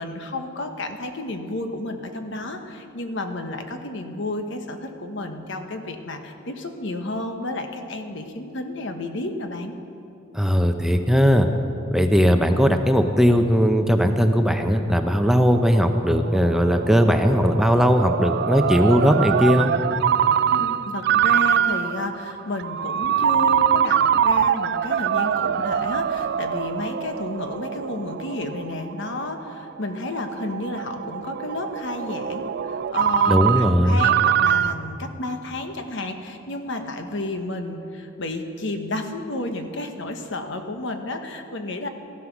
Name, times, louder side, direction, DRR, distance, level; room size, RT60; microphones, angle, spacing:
voice 1, 0.0-9.7 20.5-41.9, left 2 dB, 70° left, 6 dB, 1.2 m, -31 dB
voice 2, 10.3-11.5 11.9-19.7 33.3-34.0, equal, ahead, 5 dB, 0.6 m, -18 dB
Ringtone, 15.2-34.7, right 9 dB, 55° right, 0.4 m, -24 dB
15.0 x 11.5 x 6.1 m, 2.7 s
head